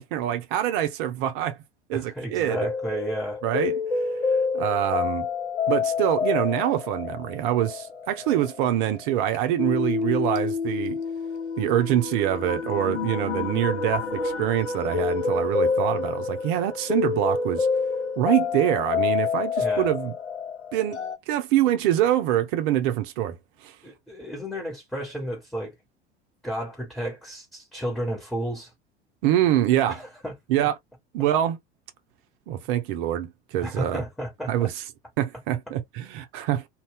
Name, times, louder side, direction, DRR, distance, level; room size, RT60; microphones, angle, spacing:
voice 1, 0.0-1.6 1.9-2.7 3.4-3.8 4.5-5.3 5.7-11.0 11.6-17.7 18.2-20.1 20.7-21.0 21.3-23.8 29.2-30.0 30.5-30.7 31.1-31.6 32.5-34.0 34.5-34.8 35.2-36.7, right 12 dB, 50° right, 0.7 m, -25 dB
voice 2, 1.9-3.4 19.6-19.9 23.8-25.7 26.4-28.7 29.9-30.3 33.6-34.7, right 1 dB, ahead, 1.4 m, -32 dB
sound 1, 2.5-21.2, left 5 dB, 85° left, 0.5 m, -28 dB
2.6 x 2.2 x 3.3 m
figure-of-eight pair, 75°, 33 cm